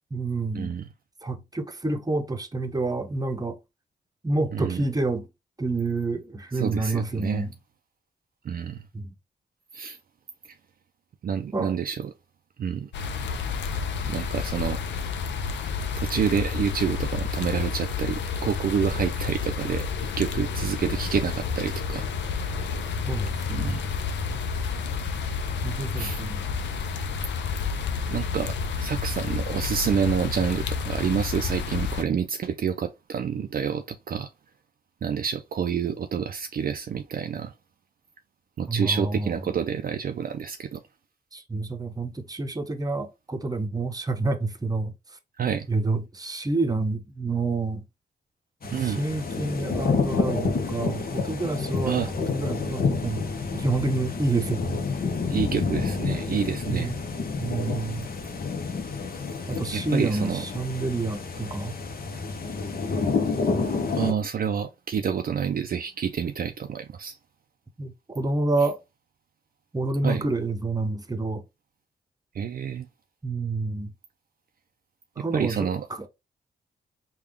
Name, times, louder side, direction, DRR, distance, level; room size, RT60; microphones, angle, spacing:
voice 1, 0.1-0.8 1.2-3.6 4.2-5.3 5.6-7.5 8.9-9.1 11.5-11.8 23.1-23.7 25.6-26.4 38.7-39.5 41.3-44.9 45.7-47.9 48.6-53.2 53.5-54.8 56.7-57.0 57.3-58.1 59.5-61.8 67.8-68.8 69.7-71.4 73.2-73.9 75.2-76.1, right 3 dB, 20° right, 0.8 m, -28 dB
voice 2, 4.5-4.8 6.5-7.5 8.4-8.8 9.7-10.0 11.2-12.1 12.6-12.9 14.0-14.8 16.0-22.1 23.5-23.8 26.0-26.2 28.1-34.3 35.0-37.5 38.6-40.8 45.4-45.7 48.7-49.1 51.9-52.1 55.3-56.9 59.7-60.4 64.0-67.2 70.0-70.3 72.3-72.9 75.2-75.9, right 7 dB, 55° right, 0.4 m, -28 dB
sound 1, 12.9-32.0, left 5 dB, 80° left, 0.5 m, -30 dB
sound 2, 48.6-64.1, left 4 dB, 55° left, 0.8 m, -29 dB
3.5 x 2.3 x 3.4 m
cardioid pair, 55°, 18 cm